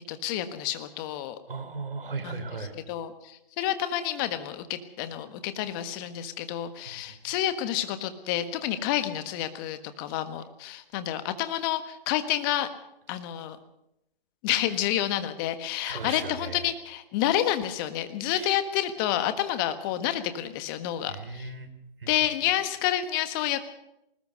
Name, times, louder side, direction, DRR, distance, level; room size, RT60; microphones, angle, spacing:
voice 1, 0.1-1.4 2.2-2.4 2.9-12.7 13.1-13.6 14.4-21.5 22.1-23.6, left 12 dB, 20° left, 10 dB, 1.5 m, -29 dB
voice 2, 1.5-2.8 6.9-7.2 15.8-16.7 18.3-18.6 21.1-21.7 22.0-22.1 22.4-22.5, right 4 dB, 70° right, 8 dB, 4.2 m, -37 dB
20.0 x 19.5 x 6.6 m, 0.83 s
figure-of-eight pair, 145°, 29 cm